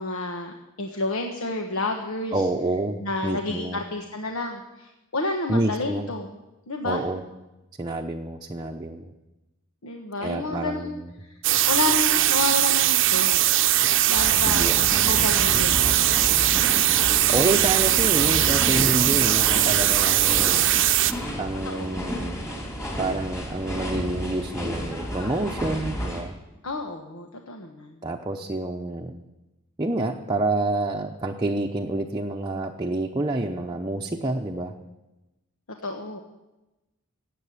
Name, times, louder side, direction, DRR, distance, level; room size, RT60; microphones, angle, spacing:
voice 1, 0.0-2.4 3.0-6.3 6.7-7.0 9.8-10.9 11.2-13.7 14.1-14.7 15.0-15.9 21.6-22.0 26.6-28.0 35.8-36.2, left 3 dB, 80° left, 3 dB, 1.3 m, -30 dB
voice 2, 2.3-3.8 5.5-6.1 6.8-7.2 7.8-9.1 10.2-11.1 14.4-14.7 17.3-20.7 21.4-22.4 23.0-26.4 28.0-29.2 29.8-34.7, right 2 dB, 20° right, 1 dB, 0.8 m, -28 dB
sound 1, 11.4-21.1, right 13 dB, 60° right, 0.7 m, -20 dB
sound 2, 14.1-26.2, equal, 15° left, 3.8 m, -31 dB
16.5 x 8.3 x 9.9 m, 1.0 s
head